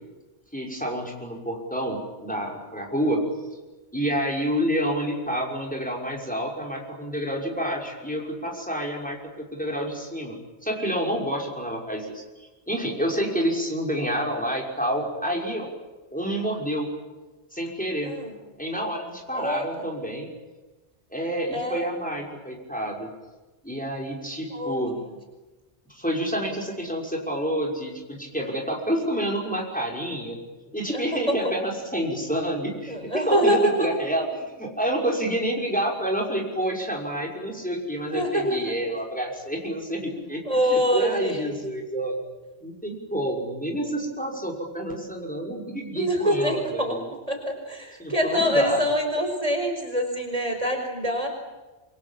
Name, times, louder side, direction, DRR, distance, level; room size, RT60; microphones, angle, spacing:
voice 1, 0.5-3.2 3.9-10.3 10.6-12.2 12.7-15.7 16.1-16.9 17.5-18.1 18.6-20.3 21.1-23.1 23.6-25.0 25.9-30.4 30.7-42.2 42.6-47.1 48.0-48.9, equal, 5° left, 0 dB, 6.0 m, -28 dB
voice 2, 18.0-18.3 19.3-19.7 21.5-21.9 24.5-25.0 30.9-31.0 31.3-31.4 32.9-33.9 38.1-38.5 40.5-41.6 46.0-47.0 47.3-51.3, equal, 30° right, 3 dB, 5.1 m, -25 dB
27.5 x 26.0 x 7.6 m, 1.2 s
omnidirectional pair, 1.1 m